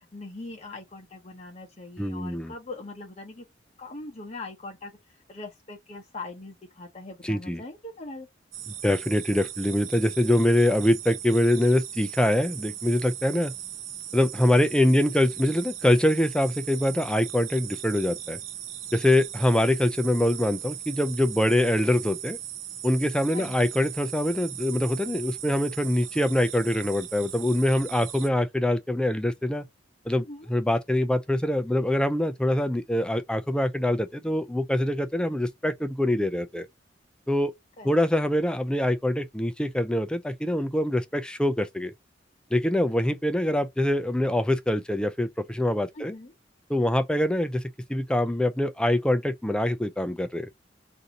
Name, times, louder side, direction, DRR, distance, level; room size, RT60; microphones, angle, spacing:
voice 1, 0.1-3.4 3.8-4.9 5.3-8.3 14.8-15.0 23.3-23.5 30.2-30.5 37.8-38.0 45.9-46.3, left 2 dB, 35° left, 0.7 m, -41 dB
voice 2, 2.0-2.5 7.2-7.6 8.8-13.5 14.1-18.4 18.9-22.4 22.8-29.7 30.1-36.7 37.3-37.5 37.8-41.9 42.5-46.2 46.7-47.6 47.9-50.5, left 1 dB, 5° left, 0.3 m, -24 dB
sound 1, 8.5-28.3, right 11 dB, 85° right, 0.6 m, -38 dB
2.7 x 2.6 x 3.9 m
head